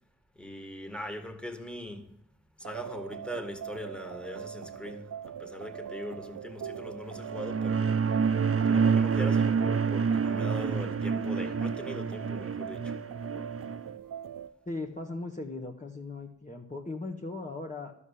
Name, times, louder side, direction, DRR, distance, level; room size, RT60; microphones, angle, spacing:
voice 1, 0.4-2.0 2.6-7.9 8.6-13.0, left 1 dB, 5° left, 2.1 m, -41 dB
sound 1, 2.6-14.5, right 9 dB, 85° right, 0.6 m, -41 dB
sound 2, 7.1-13.8, right 6 dB, 45° right, 0.7 m, -28 dB
voice 2, 14.6-17.9, left 2 dB, 25° left, 1.5 m, -38 dB
12.0 x 7.2 x 8.4 m
cardioid pair, 45°, 31 cm